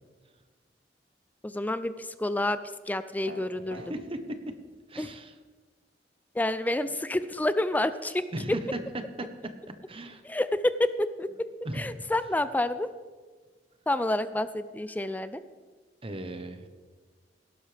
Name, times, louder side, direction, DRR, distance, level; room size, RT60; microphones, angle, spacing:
voice 1, 1.4-2.6 2.9-3.8 5.0-5.1 6.3-8.2 10.2-11.5 11.7-12.9 13.9-15.4, left 1 dB, 10° left, 13 dB, 0.4 m, -28 dB
sound 1, 3.3-3.9, right 1 dB, 85° right, 1.1 m, -42 dB
voice 2, 3.7-4.2 4.9-5.3 8.3-8.8 9.9-10.2 11.6-12.0 16.0-16.7, right 1 dB, 30° right, 8 dB, 1.0 m, -36 dB
17.0 x 12.0 x 3.4 m, 1.4 s
head